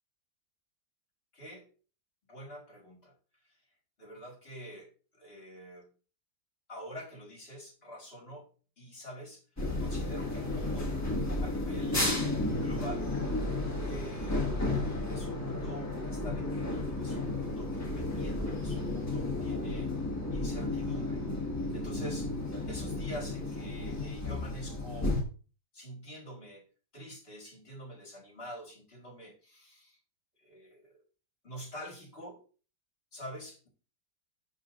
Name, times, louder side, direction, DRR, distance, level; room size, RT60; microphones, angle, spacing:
voice 1, 1.3-1.7 2.3-3.2 3.4-3.5 4.0-5.9 6.7-8.5 8.8-10.9 11.4-14.5 15.0-19.9 20.3-21.3 21.7-22.3 22.7-25.2 25.7-26.6 26.9-30.0 30.4-31.0 31.4-32.4 33.1-33.7, right 1 dB, 40° left, 0 dB, 1.9 m, -46 dB
sound 1, 9.6-25.2, left 2 dB, 10° left, 1.3 m, -33 dB
11.5 x 3.9 x 2.5 m, 0.37 s
omnidirectional pair, 1.7 m